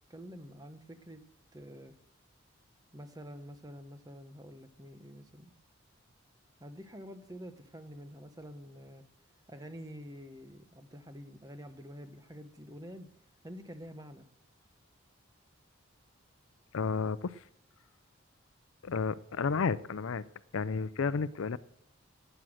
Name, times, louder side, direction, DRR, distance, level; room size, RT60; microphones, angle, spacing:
voice 1, 0.1-1.2 1.5-1.9 2.9-5.5 6.6-9.0 9.5-13.1 13.4-14.2, equal, 20° right, 8 dB, 1.0 m, -47 dB
voice 2, 16.7-17.4 18.8-20.2 20.5-21.6, left 5 dB, 80° left, 17 dB, 0.5 m, -32 dB
12.5 x 9.2 x 6.4 m, 0.83 s
head